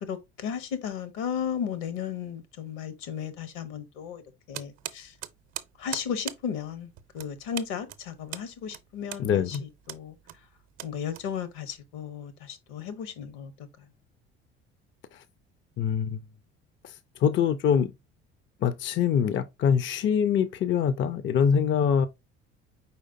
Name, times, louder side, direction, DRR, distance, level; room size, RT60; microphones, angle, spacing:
voice 1, 0.0-4.2 4.5-5.1 5.8-9.6 9.9-10.1 10.8-13.5, left 7 dB, 65° left, 1.0 m, -35 dB
sound 1, 4.5-11.7, right 13 dB, 50° right, 0.7 m, -41 dB
voice 2, 9.2-9.6 15.1-15.2 15.8-16.2 16.8-17.9 18.6-22.1, left 7 dB, 35° left, 0.5 m, -24 dB
4.8 x 4.1 x 2.6 m
hypercardioid pair, 60°, 34 cm